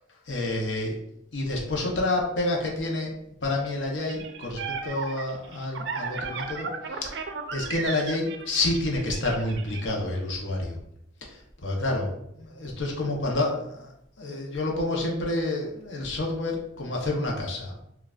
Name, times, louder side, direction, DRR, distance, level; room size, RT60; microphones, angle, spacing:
voice 1, 0.3-1.0 1.3-3.1 3.4-6.7 7.0-7.1 7.5-10.8 11.2-12.1 12.4-13.9 14.2-17.7, left 2 dB, 65° left, 0 dB, 0.8 m, -28 dB
sound 1, 4.0-9.8, right 5 dB, 60° right, 0.4 m, -35 dB
5.8 x 2.3 x 2.3 m, 0.77 s
head